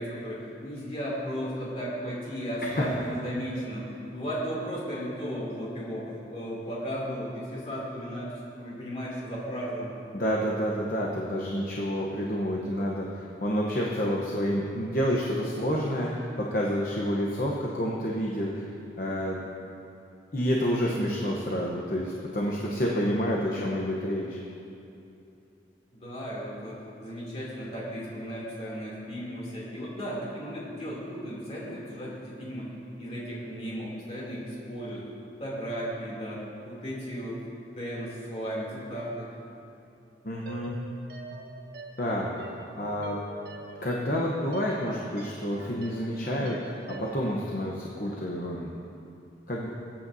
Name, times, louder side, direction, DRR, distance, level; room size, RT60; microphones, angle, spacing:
voice 1, 0.0-9.9 23.4-23.7 25.9-32.7 33.0-35.1 35.4-37.4 37.8-39.3, equal, 35° left, -6 dB, 2.9 m, -35 dB
voice 2, 10.1-18.7 19.0-19.4 20.3-24.4 40.2-40.8 42.0-42.4 42.7-43.2 43.8-46.6 46.9-48.7 49.5-49.7, equal, 50° left, -3 dB, 1.0 m, -29 dB
sound 1, 40.5-47.3, right 2 dB, 65° right, 0.9 m, -44 dB
21.5 x 8.9 x 2.8 m, 2.7 s
head